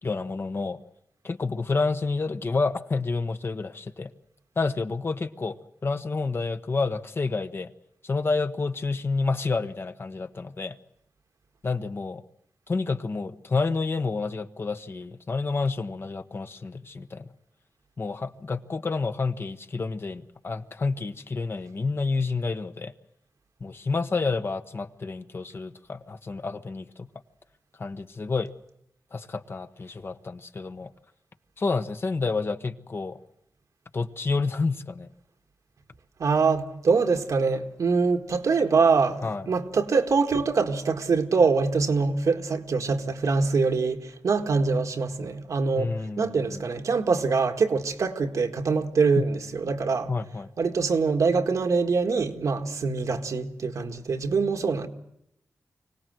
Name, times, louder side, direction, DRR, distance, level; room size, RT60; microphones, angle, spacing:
voice 1, 0.0-0.8 1.2-4.1 4.6-5.6 5.8-7.7 8.0-10.8 11.6-12.2 12.7-17.3 18.0-22.9 23.6-27.1 27.8-28.5 29.1-30.9 31.6-33.2 33.9-35.1 39.2-39.5 45.8-46.6 49.2-49.3 50.1-50.5, left 4 dB, 45° left, 1.1 m, -29 dB
voice 2, 36.2-50.1 50.6-54.9, right 4 dB, 80° right, 1.8 m, -24 dB
25.0 x 18.0 x 7.9 m
wide cardioid pair, 95°, 6 cm